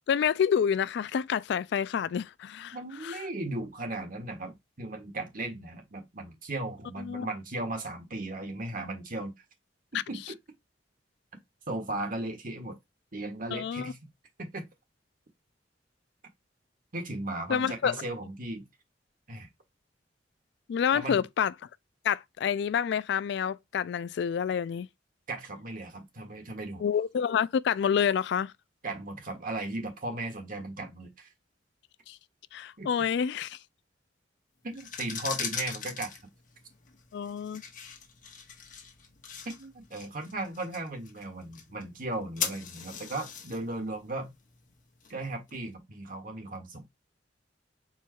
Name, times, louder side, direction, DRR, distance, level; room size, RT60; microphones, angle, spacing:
voice 1, 0.1-2.7 3.0-3.2 7.0-7.3 13.5-13.9 17.5-18.1 20.7-21.5 22.0-24.9 26.8-28.5 32.1-32.2 32.5-33.6 37.1-37.6, left 7 dB, 65° left, 0.3 m, -28 dB
voice 2, 2.7-9.3 9.9-10.2 11.7-12.8 13.1-14.0 14.4-14.7 16.9-18.6 19.3-19.5 20.9-21.2 25.3-26.8 28.8-31.3 32.8-32.9 34.6-36.1 39.4-44.3 45.1-46.9, right 2 dB, 50° right, 1.5 m, -36 dB
sound 1, 34.7-45.5, left 7 dB, 45° left, 1.1 m, -41 dB
4.5 x 2.3 x 4.4 m
head